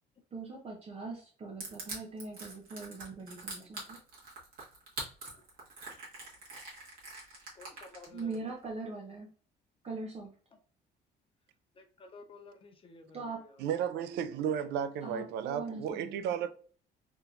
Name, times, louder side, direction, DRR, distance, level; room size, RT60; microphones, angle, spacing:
voice 1, 0.3-4.0 8.1-9.3 9.8-10.3 13.1-13.4 15.0-16.4, right 3 dB, 35° right, 0.8 m, -41 dB
Crushing, 1.6-8.3, right 3 dB, 55° right, 1.7 m, -43 dB
voice 2, 7.5-8.5 11.7-14.2, left 3 dB, 30° left, 0.5 m, -54 dB
voice 3, 13.6-16.5, right 8 dB, 80° right, 0.4 m, -33 dB
3.5 x 2.8 x 2.4 m
cardioid pair, 110°, 17 cm